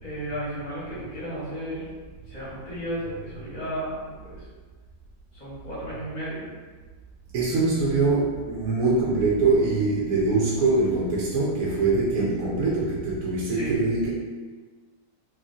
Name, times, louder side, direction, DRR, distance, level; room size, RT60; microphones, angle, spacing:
voice 1, 0.0-1.9 2.3-4.4 5.3-6.4 13.5-13.8, equal, 35° left, -9 dB, 0.8 m, -33 dB
voice 2, 7.3-14.1, right 3 dB, 70° right, -5 dB, 0.8 m, -23 dB
2.8 x 2.4 x 2.6 m, 1.4 s
omnidirectional pair, 1.9 m